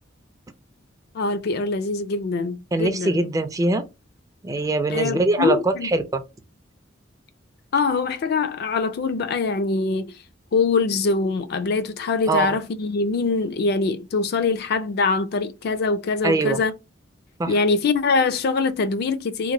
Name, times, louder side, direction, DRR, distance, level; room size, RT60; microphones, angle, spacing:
voice 1, 1.1-3.2 4.9-5.9 7.7-10.1 10.5-16.7 17.5-19.5, left 4 dB, 55° left, 0.4 m, -23 dB
voice 2, 2.7-3.8 4.4-6.2 12.3-12.6 16.2-16.6 17.4-17.5, right 2 dB, 20° right, 0.3 m, -22 dB
2.9 x 2.5 x 2.6 m
head